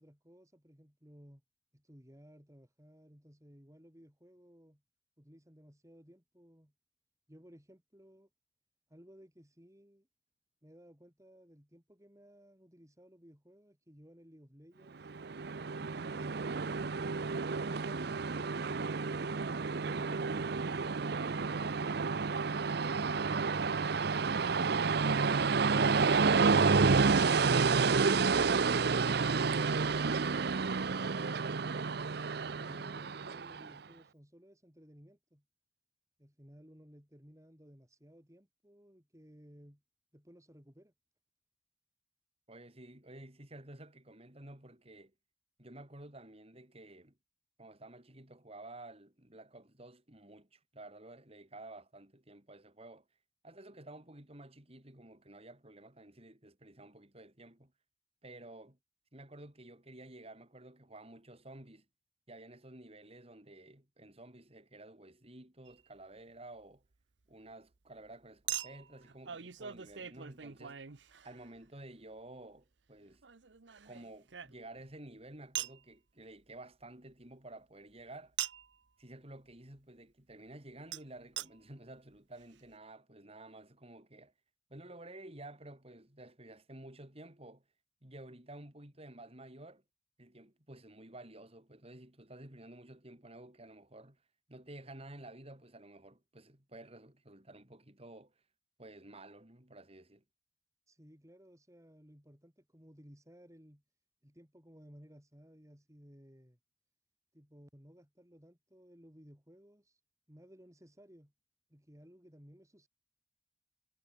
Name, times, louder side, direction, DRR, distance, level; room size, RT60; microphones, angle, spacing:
voice 1, 0.0-1.4 1.7-4.8 5.2-6.7 7.3-8.3 8.9-10.1 10.6-15.1 32.4-35.4 36.2-39.8 40.1-40.9 100.9-103.8 104.2-106.6 107.3-110.0 110.3-111.3 111.7-112.9, equal, 15° right, 5.9 m, -58 dB
Train, 15.1-33.7, right 4 dB, 60° right, 0.7 m, -30 dB
voice 2, 42.5-45.1 45.6-47.2 47.6-53.0 53.4-57.7 58.2-58.8 59.1-61.9 62.3-66.8 67.3-70.8 71.2-73.2 73.8-78.4 79.0-84.3 84.7-87.6 88.0-89.8 90.2-94.2 94.5-98.3 98.8-100.2, right 1 dB, 35° right, 4.2 m, -52 dB
Chink clink, 65.7-65.8 68.5-71.7 73.2-74.9 75.5-75.8 78.4-78.8 80.9-81.0 81.4-81.5 82.1-82.2 82.4-82.5, right 11 dB, 80° right, 1.0 m, -42 dB
head